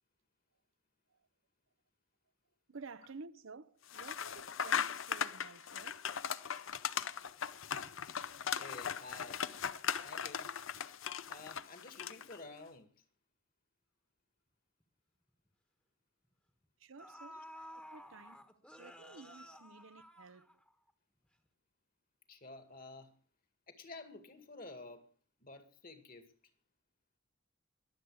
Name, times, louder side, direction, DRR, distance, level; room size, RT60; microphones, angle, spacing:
voice 1, 2.7-6.1 16.8-17.5 17.9-18.5 18.8-20.5, right 4 dB, 80° right, 0.8 m, -53 dB
sound 1, 3.9-12.4, left 8 dB, 80° left, 0.7 m, -38 dB
voice 2, 8.6-9.4 10.0-10.5 11.3-12.9 19.1-19.2 22.3-23.2 23.7-25.0 25.4-26.3, left 3 dB, 45° left, 2.1 m, -51 dB
sound 2, 14.8-14.9 15.3-15.5 16.5-16.6 17.0-20.9 21.2-21.3, equal, 5° left, 1.3 m, -53 dB
22.5 x 8.0 x 4.9 m
head